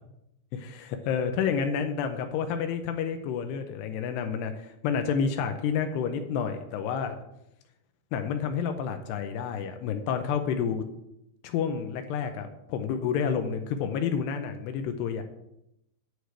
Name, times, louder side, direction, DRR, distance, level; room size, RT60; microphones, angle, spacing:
voice 1, 0.5-7.2 8.1-10.8 11.4-15.2, left 7 dB, 80° left, 7 dB, 2.8 m, -29 dB
10.0 x 4.9 x 8.0 m, 0.83 s
omnidirectional pair, 4.9 m